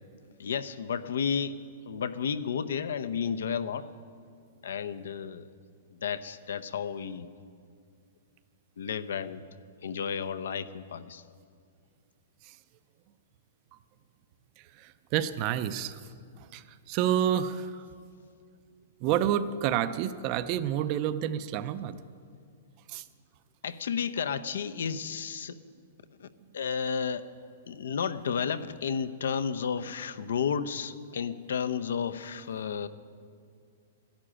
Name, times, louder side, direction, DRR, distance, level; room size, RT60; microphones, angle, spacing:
voice 1, 0.4-3.9 4.6-5.5 6.0-7.3 8.8-9.4 9.8-11.2 23.6-25.6 26.2-26.3 26.5-27.2 27.7-32.9, left 7 dB, 80° left, 12 dB, 0.7 m, -32 dB
voice 2, 14.8-16.0 16.5-17.9 19.0-22.0 22.9-23.0, right 10 dB, 25° right, 13 dB, 0.5 m, -29 dB
12.5 x 11.5 x 8.8 m, 2.2 s
hypercardioid pair, 175°, 0 cm